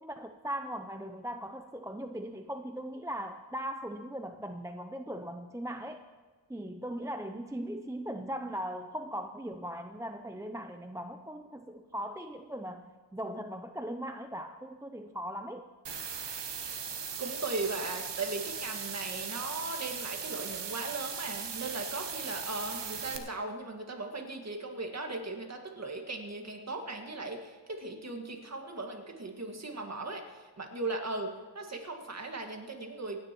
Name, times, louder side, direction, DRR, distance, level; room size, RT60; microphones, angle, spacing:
voice 1, 0.0-6.0 6.5-12.9 13.1-15.7, equal, 5° right, 6 dB, 0.4 m, -39 dB
sound 1, 15.9-23.2, right 6 dB, 60° right, 1.3 m, -38 dB
voice 2, 17.2-33.2, right 3 dB, 35° right, 2 dB, 1.9 m, -38 dB
26.5 x 9.9 x 3.0 m, 1.4 s
wide cardioid pair, 120°, 48 cm